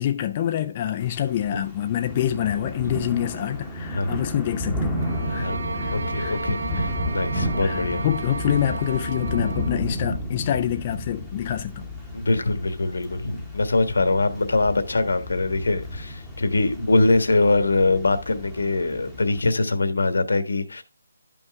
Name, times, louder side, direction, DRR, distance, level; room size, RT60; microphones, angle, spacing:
voice 1, 0.0-5.0 5.3-5.5 5.8-6.4 7.6-11.8, left 11 dB, 20° left, 0.4 m, -26 dB
Thunder / Rain, 1.0-19.4, equal, ahead, 1.0 m, -32 dB
sound 1, 5.0-9.8, right 3 dB, 50° right, 0.7 m, -34 dB
voice 2, 5.9-8.0 12.1-20.8, left 2 dB, 80° left, 1.4 m, -23 dB
12.0 x 5.4 x 3.4 m
hypercardioid pair, 175°, 0 cm